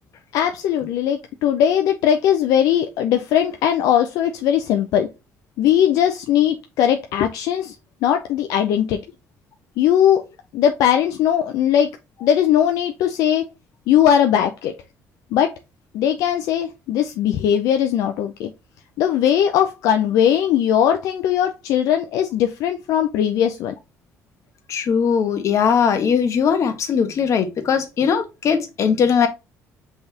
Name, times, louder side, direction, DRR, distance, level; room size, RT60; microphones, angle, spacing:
voice 1, 0.3-5.1 5.6-7.7 8.0-9.0 9.8-10.2 10.5-11.9 12.2-13.4 13.9-14.7 15.3-15.5 15.9-18.5 19.0-23.7, left 10 dB, 80° left, 0.5 m, -19 dB
voice 2, 24.7-29.3, left 7 dB, 55° left, 1.2 m, -19 dB
5.3 x 3.5 x 2.9 m
cardioid pair, 100°, 6 cm